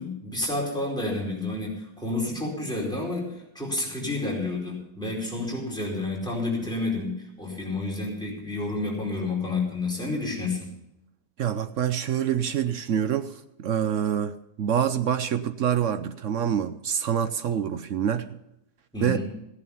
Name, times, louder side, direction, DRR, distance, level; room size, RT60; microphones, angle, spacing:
voice 1, 0.0-10.7 18.9-19.3, left 2 dB, ahead, -3 dB, 4.7 m, -30 dB
voice 2, 11.4-13.3 13.6-18.3 19.0-19.2, right 9 dB, 60° right, 11 dB, 0.9 m, -26 dB
14.5 x 11.0 x 5.7 m, 0.84 s
omnidirectional pair, 1.7 m